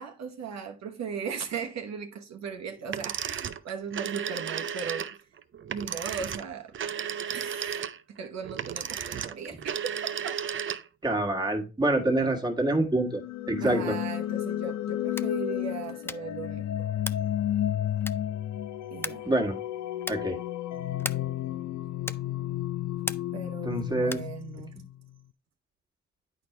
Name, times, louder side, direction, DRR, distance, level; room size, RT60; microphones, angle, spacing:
voice 1, 0.0-5.1 5.7-6.8 7.3-10.3 13.6-16.9 18.9-19.3 23.3-24.7, right 6 dB, 60° right, 1.0 m, -37 dB
sound 1, 2.9-11.0, right 8 dB, 40° right, 0.6 m, -34 dB
voice 2, 11.0-13.2 13.5-14.0 19.2-19.6 20.1-20.4 23.6-24.2, right 2 dB, 15° right, 1.6 m, -26 dB
sound 2, 13.1-25.0, left 12 dB, 70° left, 0.6 m, -32 dB
sound 3, 15.0-15.4 16.0-16.4 17.0-17.4 18.0-18.4 19.0-19.4 20.0-20.4 21.0-21.4 22.0-22.4 23.0-23.4 24.0-24.4, left 2 dB, 10° left, 0.3 m, -37 dB
9.9 x 4.5 x 3.2 m
cardioid pair, 90°, 30 cm